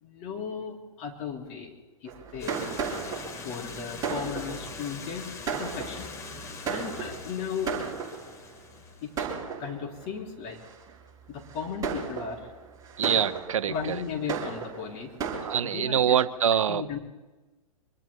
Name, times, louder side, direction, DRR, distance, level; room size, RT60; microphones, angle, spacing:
voice 1, 0.0-2.6 3.4-6.1 6.7-7.7 9.0-9.3 9.6-10.6 11.3-12.5 13.7-15.1 15.6-16.2 16.7-17.0, left 6 dB, 35° left, 0 dB, 3.8 m, -36 dB
Fireworks, 2.1-8.5 9.2-10.1 10.6-10.9 11.5-15.6, right 5 dB, 20° right, 4.6 m, -35 dB
sound 1, 2.4-9.3, left 4 dB, 15° left, 1.5 m, -42 dB
voice 2, 13.0-14.0 15.4-16.8, right 9 dB, 60° right, 12 dB, 0.9 m, -25 dB
26.0 x 24.5 x 2.2 m, 1.2 s
figure-of-eight pair, 110°, 19 cm